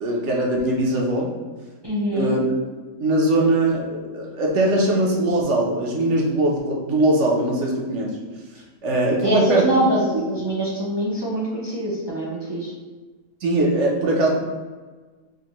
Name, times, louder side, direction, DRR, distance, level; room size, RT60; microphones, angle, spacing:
voice 1, 0.0-1.3 2.1-2.4 3.0-8.2 8.8-9.7 13.4-14.3, right 1 dB, 60° right, -2 dB, 1.0 m, -21 dB
voice 2, 1.8-2.4 9.2-12.7, right 1 dB, 40° right, -7 dB, 0.3 m, -24 dB
5.1 x 2.1 x 2.9 m, 1.3 s
omnidirectional pair, 1.4 m